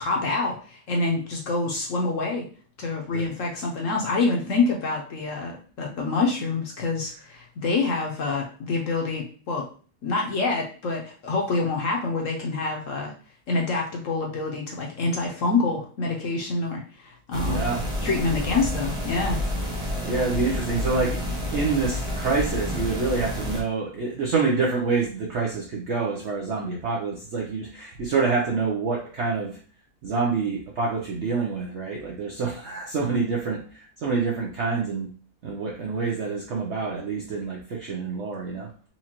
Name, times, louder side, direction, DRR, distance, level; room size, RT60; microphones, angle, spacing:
voice 1, 0.0-2.5 2.8-9.6 10.0-13.1 13.5-17.6 18.0-19.4, left 3 dB, 60° left, 0 dB, 0.9 m, -26 dB
sound 1, 17.3-23.6, equal, 5° right, 0.9 m, -29 dB
voice 2, 17.3-17.9 19.8-29.6 30.0-35.1 35.4-38.7, right 4 dB, 65° right, -2 dB, 0.7 m, -27 dB
4.3 x 2.5 x 2.9 m, 0.41 s
omnidirectional pair, 1.8 m